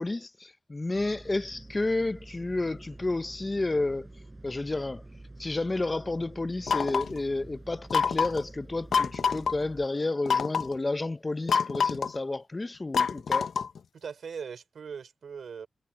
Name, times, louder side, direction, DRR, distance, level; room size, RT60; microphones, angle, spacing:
voice 1, 0.0-4.1 4.4-5.0 5.4-13.5, left 2 dB, 25° left, 0.7 m, -31 dB
sound 1, 0.9-9.9, right 2 dB, 20° right, 6.5 m, -48 dB
sound 2, 6.7-7.2 7.9-8.4 8.9-9.5 10.3-10.7 11.5-12.2 12.9-13.8, left 6 dB, 90° left, 0.7 m, -26 dB
voice 2, 13.9-15.7, right 6 dB, 80° right, 3.5 m, -40 dB
wide cardioid pair, 120°, 0 cm